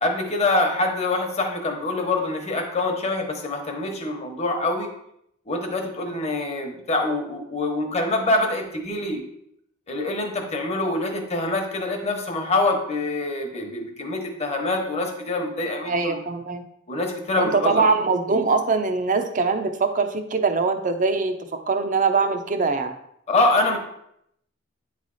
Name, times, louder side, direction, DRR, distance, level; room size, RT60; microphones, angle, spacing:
voice 1, 0.0-4.9 5.5-9.2 9.9-16.2 16.9-17.9 23.3-23.8, left 2 dB, 35° left, 3 dB, 1.0 m, -25 dB
voice 2, 15.9-16.6 17.4-21.4 21.7-22.9, right 4 dB, 40° right, 7 dB, 0.6 m, -22 dB
9.0 x 3.2 x 4.0 m, 0.75 s
head